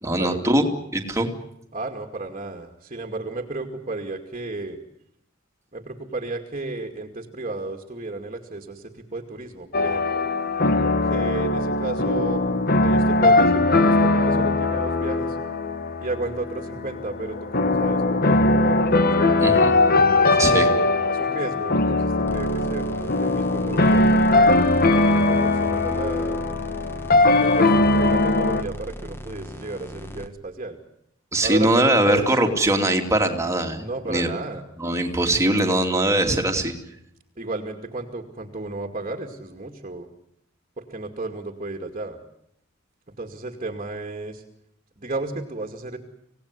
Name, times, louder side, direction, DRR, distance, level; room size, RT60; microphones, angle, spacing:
voice 1, 0.0-0.7 0.9-1.3 19.4-19.7 20.4-20.7 31.3-34.3 34.8-36.7, right 1 dB, 15° right, 3 dB, 2.8 m, -21 dB
voice 2, 1.7-4.8 5.7-8.8 9.1-10.2 10.8-12.4 12.8-15.4 16.0-19.4 20.1-24.6 25.1-26.5 27.4-30.8 31.4-32.3 33.8-34.6 37.4-40.1 40.8-42.2 43.2-44.4 45.0-46.0, right 2 dB, 35° right, 4 dB, 2.3 m, -33 dB
sound 1, 9.7-28.6, left 2 dB, 50° left, 1.5 m, -20 dB
sound 2, 22.3-30.3, equal, 10° left, 1.9 m, -38 dB
26.5 x 17.5 x 9.8 m, 0.77 s
head